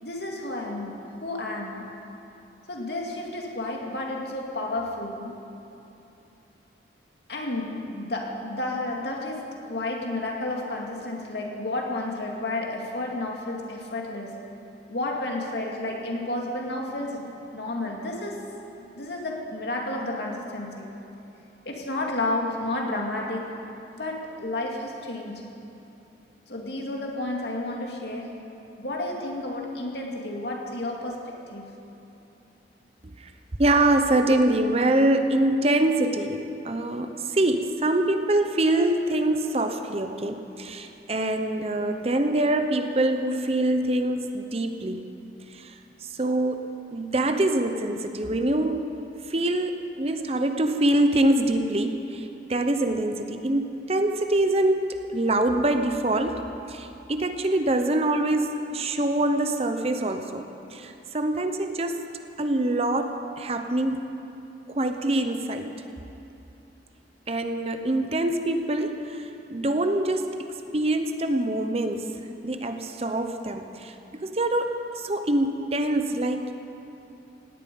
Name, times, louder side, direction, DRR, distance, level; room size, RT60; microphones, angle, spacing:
voice 1, 0.0-1.8 2.7-5.4 7.3-14.5 14.9-18.5 19.0-20.9 21.6-23.7 24.0-25.5 26.5-28.4 28.8-31.7, left 2 dB, 65° left, 0 dB, 2.4 m, -31 dB
voice 2, 33.6-45.0 45.5-45.7 46.0-48.8 49.3-62.1 62.4-64.1 64.7-65.7 67.3-72.1 72.4-73.9 74.2-76.5, right 1 dB, 35° right, 7 dB, 0.8 m, -25 dB
17.0 x 9.1 x 9.4 m, 2.9 s
head